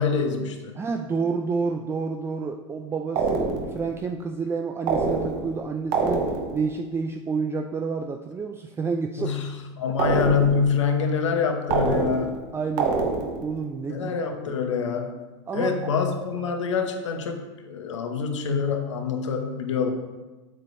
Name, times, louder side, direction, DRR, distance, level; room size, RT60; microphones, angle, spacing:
voice 1, 0.0-0.7 9.2-12.3 13.9-15.1 15.5-19.9, left 5 dB, 75° left, 5 dB, 1.0 m, -25 dB
voice 2, 0.8-9.4 12.5-13.1 13.4-14.1 14.5-14.6 15.5-15.7, right 5 dB, 15° right, 5 dB, 0.4 m, -29 dB
sound 1, 3.2-3.9 4.9-5.6 5.9-6.7 10.0-10.7 11.7-12.4 12.8-13.5, right 4 dB, 50° right, 1.1 m, -25 dB
7.4 x 7.4 x 2.7 m, 1.2 s
hypercardioid pair, 90°, 15 cm